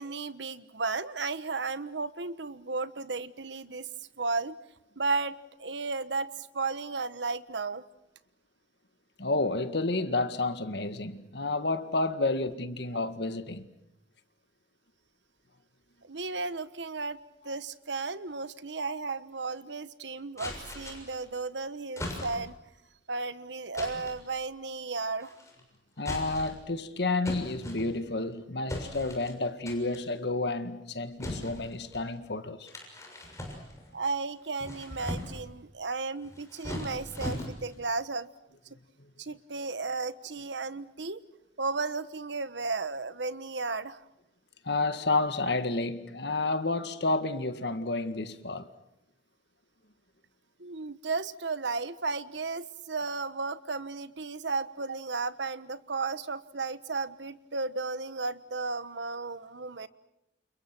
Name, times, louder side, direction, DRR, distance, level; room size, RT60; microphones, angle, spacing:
voice 1, 0.0-3.9 4.2-4.6 5.0-7.8 16.0-22.6 23.1-25.3 33.9-38.3 39.2-41.2 41.6-44.0 50.6-59.9, right 3 dB, 90° right, 1.3 m, -34 dB
voice 2, 9.2-13.7 17.5-17.6 26.0-32.7 44.6-48.7, left 2 dB, 65° left, 1.9 m, -30 dB
sound 1, 20.4-21.2 22.0-22.6 23.7-24.2 25.2-25.6 26.0-26.7 27.2-28.2 28.7-29.3 29.7-30.1 31.2-32.1 32.7-33.9 34.4-35.5 36.2-37.8, left 1 dB, 15° left, 6.9 m, -39 dB
29.5 x 29.0 x 6.1 m
head